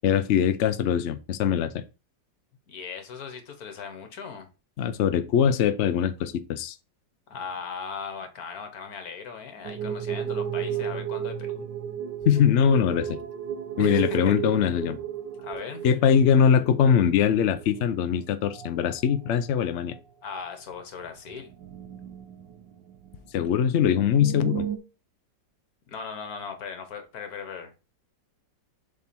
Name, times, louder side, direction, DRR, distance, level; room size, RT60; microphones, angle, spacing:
voice 1, 0.0-1.8 4.8-6.8 12.2-13.2 13.8-15.0 15.8-20.0 23.3-24.7, left 8 dB, 90° left, 0.6 m, -22 dB
voice 2, 2.7-4.5 7.3-11.7 13.8-14.4 15.4-15.8 20.2-21.5 25.9-27.7, left 6 dB, 55° left, 1.6 m, -38 dB
sound 1, 9.6-18.2 18.5-19.0 19.4-19.5 19.9-20.0 21.0-23.2 23.5-23.6 23.9-24.8, right 9 dB, 75° right, 1.4 m, -34 dB
7.1 x 3.9 x 4.3 m
omnidirectional pair, 2.0 m